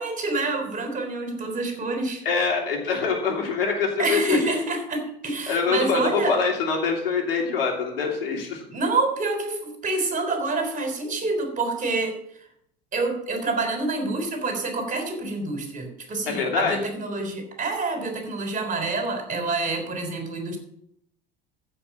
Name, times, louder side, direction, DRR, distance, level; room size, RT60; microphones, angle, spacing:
voice 1, 0.0-2.2 4.0-6.4 8.7-12.1 12.9-20.6, right 3 dB, 25° right, 4 dB, 3.7 m, -27 dB
voice 2, 2.2-4.4 5.5-8.7 16.3-16.8, left 5 dB, 75° left, 2 dB, 2.9 m, -24 dB
15.0 x 5.9 x 6.1 m, 0.72 s
hypercardioid pair, 80°, 29 cm